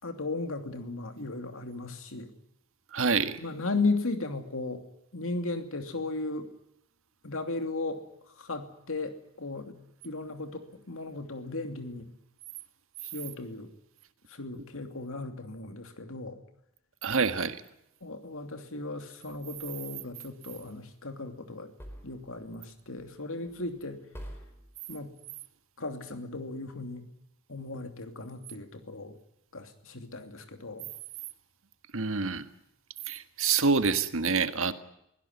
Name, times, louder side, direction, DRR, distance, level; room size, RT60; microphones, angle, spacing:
voice 1, 0.0-2.3 3.4-4.8 5.1-6.5 7.2-8.0 8.4-9.8 10.0-12.0 13.0-13.7 14.3-16.4 18.0-21.7 22.0-24.1 24.9-25.1 25.8-27.0 27.5-29.2 29.5-30.9, left 3 dB, 65° left, 7 dB, 2.9 m, -36 dB
voice 2, 2.9-3.4 17.0-17.6 31.9-32.4 33.1-34.7, right 5 dB, 65° right, 10 dB, 1.6 m, -26 dB
sound 1, 19.5-20.1 21.8-22.6 23.0-23.2 23.5-23.8 24.1-24.7, equal, 10° left, 4.5 m, -47 dB
22.5 x 17.0 x 9.6 m, 0.81 s
head